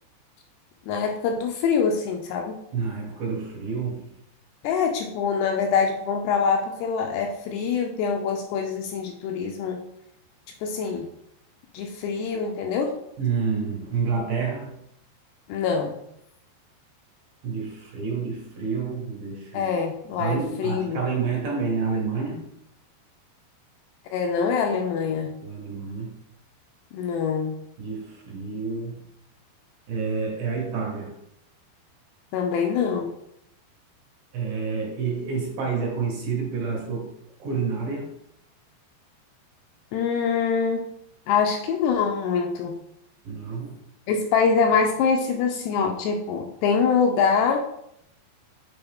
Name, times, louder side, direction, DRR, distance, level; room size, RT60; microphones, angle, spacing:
voice 1, 0.9-2.6 4.6-9.8 10.6-11.1 11.7-12.9 15.5-15.9 19.5-21.0 24.1-25.3 26.9-27.5 32.3-33.1 39.9-40.9 41.3-42.8 44.1-47.7, left 6 dB, 80° left, 3 dB, 2.6 m, -24 dB
voice 2, 2.7-4.2 13.2-14.8 17.4-19.7 20.2-22.5 25.4-26.2 27.8-29.0 29.9-31.2 34.3-37.1 37.4-38.1 43.2-43.8, right 5 dB, 65° right, -3 dB, 2.7 m, -29 dB
7.0 x 4.4 x 3.5 m, 0.75 s
omnidirectional pair, 5.1 m